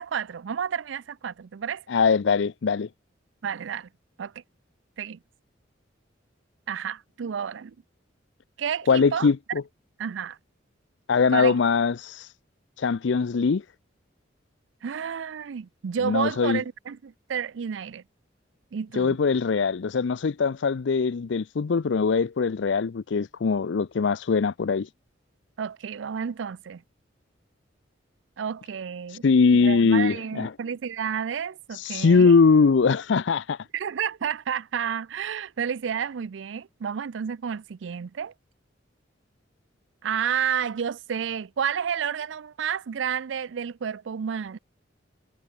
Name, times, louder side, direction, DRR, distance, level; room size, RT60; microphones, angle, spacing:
voice 1, 0.0-1.8 3.4-3.9 4.2-4.3 5.0-5.2 6.7-7.7 8.6-9.3 10.0-10.4 11.3-11.6 14.8-18.0 18.7-19.2 25.6-26.8 28.4-29.2 29.5-32.3 33.7-38.3 40.0-44.6, right 7 dB, 75° right, 0.4 m, -30 dB
voice 2, 1.9-2.9 8.9-9.6 11.1-12.3 12.8-13.6 16.0-16.6 18.9-24.9 29.1-30.5 31.7-33.7, left 5 dB, 70° left, 0.5 m, -22 dB
head